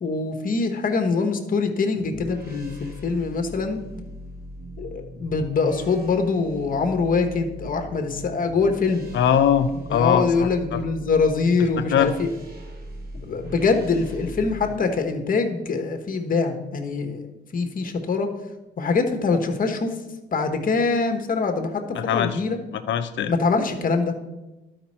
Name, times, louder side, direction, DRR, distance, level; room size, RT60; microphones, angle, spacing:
voice 1, 0.0-3.8 4.8-9.0 9.9-12.3 13.2-17.3 17.5-18.3 18.8-20.0 20.3-22.6 23.3-24.2, left 4 dB, 45° left, 5 dB, 1.2 m, -24 dB
sound 1, 1.9-14.8, equal, 50° right, 1.8 m, -40 dB
voice 2, 9.1-10.8 11.9-12.1 21.9-22.4 22.7-23.3, left 8 dB, 70° left, 9 dB, 0.7 m, -22 dB
12.0 x 5.2 x 4.3 m, 1.1 s
cardioid pair, 90°, 20 cm